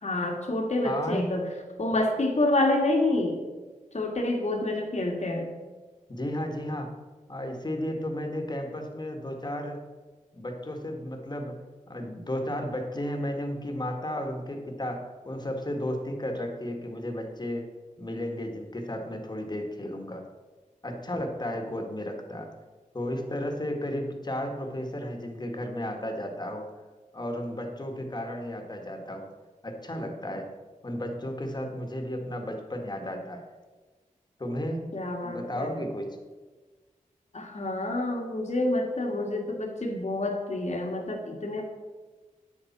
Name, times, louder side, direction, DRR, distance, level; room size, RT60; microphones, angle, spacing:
voice 1, 0.0-1.4 1.8-3.4 3.9-5.5 34.9-35.8 37.3-41.6, left 2 dB, 55° left, 1 dB, 1.9 m, -28 dB
voice 2, 0.8-1.3 6.1-6.9 7.3-9.8 10.3-11.6 11.9-17.7 18.0-20.2 20.8-22.5 22.9-26.7 27.1-29.3 29.6-30.5 30.8-33.4 34.4-34.9 35.2-36.2, left 1 dB, 30° left, 3 dB, 1.8 m, -33 dB
9.7 x 7.3 x 6.0 m, 1.3 s
wide cardioid pair, 80°, 14 cm